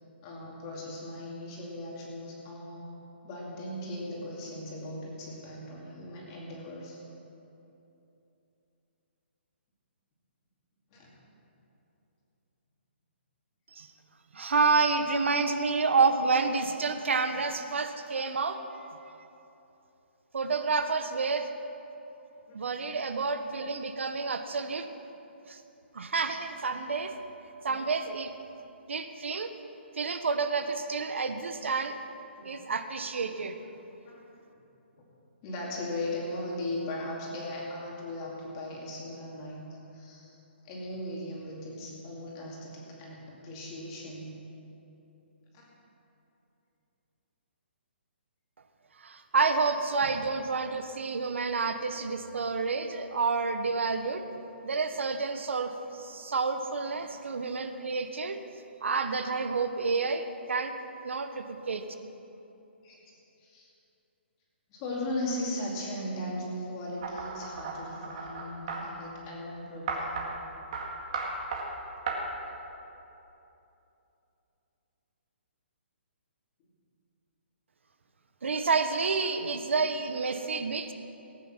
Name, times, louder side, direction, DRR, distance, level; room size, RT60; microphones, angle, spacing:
voice 1, 0.2-2.9 3.2-7.0 10.9-11.1 15.0-15.1 22.5-22.6 32.3-32.5 34.1-34.2 34.9-35.1 35.4-40.4 40.6-44.3 45.5-45.7 62.8-63.0 63.4-63.7 64.7-70.2, left 1 dB, 20° left, -3 dB, 2.4 m, -38 dB
voice 2, 14.3-18.9 20.3-21.5 22.5-24.9 25.5-25.6 25.9-27.1 27.6-28.3 28.9-29.5 30.0-32.0 32.4-33.6 49.0-54.2 54.6-58.4 58.8-60.7 61.0-61.8 78.4-80.9, right 4 dB, 85° right, 8 dB, 1.1 m, -29 dB
sound 1, 67.0-68.8 69.9-70.3 70.7-70.9 71.1-71.6 72.1-72.2, right 5 dB, 30° right, 2.0 m, -34 dB
18.5 x 9.2 x 6.0 m, 2.9 s
hypercardioid pair, 175°, 6 cm